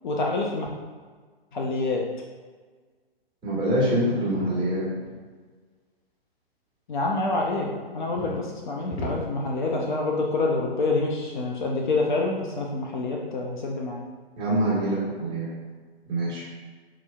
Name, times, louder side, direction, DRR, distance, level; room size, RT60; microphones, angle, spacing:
voice 1, 0.0-0.7 1.5-2.0 6.9-14.0, left 3 dB, 50° left, -1 dB, 0.5 m, -27 dB
voice 2, 3.4-4.9 8.2-8.4 14.4-15.5 16.1-16.5, right 1 dB, 15° right, -8 dB, 1.4 m, -25 dB
sound 1, 4.4-5.2 7.4-8.4 8.9-9.9, left 1 dB, 80° left, 1.0 m, -37 dB
4.6 x 2.8 x 2.2 m, 1.5 s
figure-of-eight pair, 120°, 31 cm